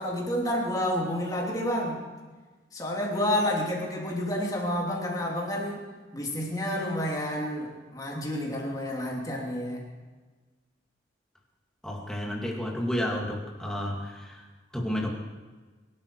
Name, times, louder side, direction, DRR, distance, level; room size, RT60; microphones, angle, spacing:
voice 1, 0.0-2.0 2.7-5.8 6.1-9.8, left 1 dB, 20° left, -2 dB, 3.0 m, -29 dB
voice 2, 11.8-14.5 14.7-15.1, equal, 5° left, -1 dB, 2.3 m, -31 dB
23.0 x 12.5 x 4.8 m, 1.3 s
head